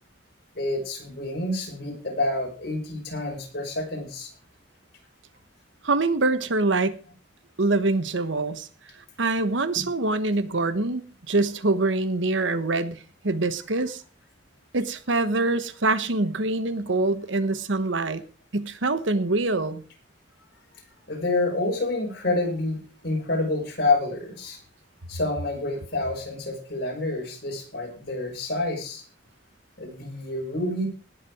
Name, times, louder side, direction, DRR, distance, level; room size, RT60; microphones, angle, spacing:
voice 1, 0.5-4.3 9.8-9.9 21.1-24.6 25.1-29.0 29.8-30.9, left 2 dB, 55° left, 1 dB, 5.7 m, -28 dB
voice 2, 5.8-6.9 7.6-8.7 9.2-13.0 13.2-14.0 14.7-18.2 18.5-19.8, right 2 dB, 75° right, 12 dB, 1.2 m, -24 dB
19.0 x 7.6 x 4.9 m, 0.36 s
head